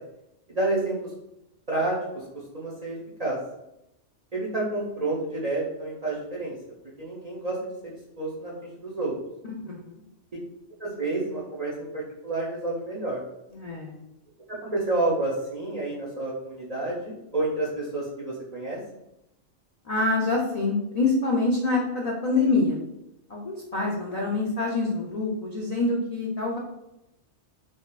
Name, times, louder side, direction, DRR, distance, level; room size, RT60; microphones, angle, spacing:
voice 1, 0.5-1.1 1.7-2.3 2.5-3.4 4.3-6.5 7.0-7.6 7.8-9.1 10.8-13.2 14.5-18.8, right 2 dB, 50° right, -5 dB, 0.5 m, -29 dB
voice 2, 13.5-14.0 19.8-22.8 23.3-26.6, left 3 dB, 60° left, -3 dB, 0.4 m, -26 dB
3.5 x 2.5 x 2.2 m, 0.88 s
omnidirectional pair, 1.3 m